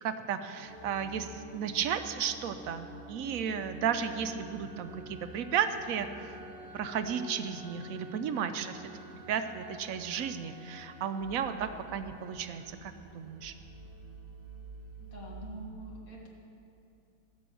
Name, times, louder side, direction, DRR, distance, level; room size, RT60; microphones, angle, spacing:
voice 1, 0.0-6.1 6.7-8.8 9.3-13.5, right 7 dB, 75° right, 9 dB, 1.0 m, -34 dB
sound 1, 0.6-15.7, right 2 dB, 15° right, 1.1 m, -49 dB
voice 2, 15.0-16.3, right 1 dB, 70° left, -2 dB, 2.4 m, -45 dB
16.0 x 6.2 x 7.6 m, 2.7 s
omnidirectional pair, 1.6 m